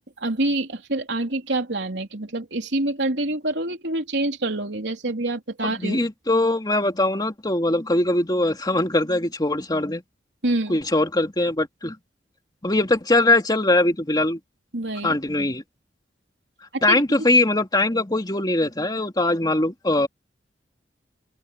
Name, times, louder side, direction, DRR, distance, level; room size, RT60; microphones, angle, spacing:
voice 1, 0.2-6.0 10.4-10.8 14.7-15.2 16.7-17.0, right 2 dB, 90° right, 3.4 m, -26 dB
voice 2, 5.6-10.0 10.7-12.0 12.6-14.4 15.0-15.6 16.8-20.1, left 2 dB, 25° left, 2.5 m, -21 dB
open air
head